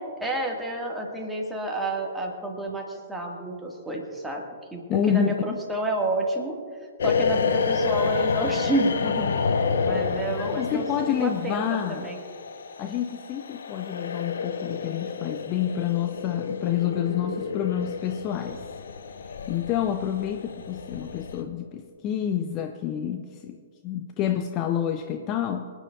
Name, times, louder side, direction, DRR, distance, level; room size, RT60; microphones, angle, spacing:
voice 1, 0.0-4.8 5.1-6.6 7.0-9.3 9.8-10.9 11.2-12.2, right 1 dB, 5° right, 0 dB, 1.8 m, -29 dB
voice 2, 4.9-5.6 9.9-10.0 10.4-12.1 12.8-18.6 19.5-23.6 23.8-25.7, left 9 dB, 30° left, 7 dB, 0.5 m, -28 dB
sound 1, 7.0-21.4, left 5 dB, 60° left, 0.7 m, -29 dB
27.0 x 9.9 x 2.4 m, 2.1 s
figure-of-eight pair, 110°, 0 cm